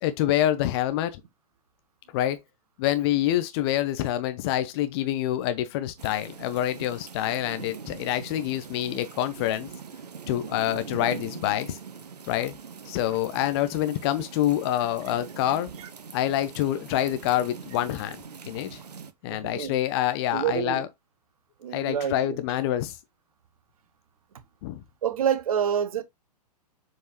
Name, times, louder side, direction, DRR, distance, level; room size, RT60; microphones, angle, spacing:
voice 1, 0.0-1.2 2.1-2.4 2.8-9.7 10.3-11.8 12.3-12.6 12.8-15.7 16.1-18.2 18.4-18.8 19.2-20.9 21.7-23.0 24.6-24.8, left 12 dB, 40° left, 0.8 m, -26 dB
sound 1, 6.0-19.1, right 6 dB, 75° right, 1.0 m, -42 dB
voice 2, 19.3-19.7 20.3-20.9 21.6-22.4 25.0-26.0, right 9 dB, 60° right, 1.3 m, -27 dB
7.0 x 4.7 x 3.0 m
figure-of-eight pair, 110°, 20 cm